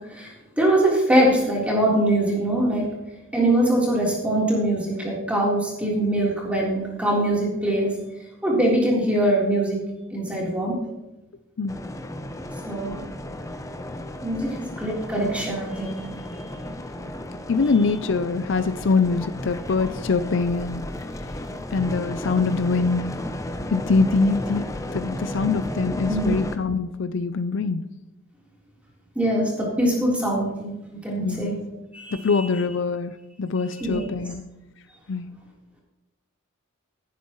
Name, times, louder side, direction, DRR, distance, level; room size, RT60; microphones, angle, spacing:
voice 1, 0.6-2.9 3.3-7.9 8.4-9.8 10.1-10.8 12.7-13.0 14.2-16.0 16.4-16.5 26.1-26.3 29.2-31.6 31.9-32.5 33.8-34.0, right 1 dB, 5° right, -4 dB, 3.6 m, -23 dB
sound 1, 11.7-26.6, left 1 dB, 15° left, 0.6 m, -33 dB
voice 2, 17.5-20.8 21.7-23.1 23.7-27.8 31.2-31.5 32.1-34.4 35.1-35.3, left 4 dB, 60° left, 11 dB, 0.5 m, -24 dB
17.5 x 10.0 x 3.1 m, 0.98 s
head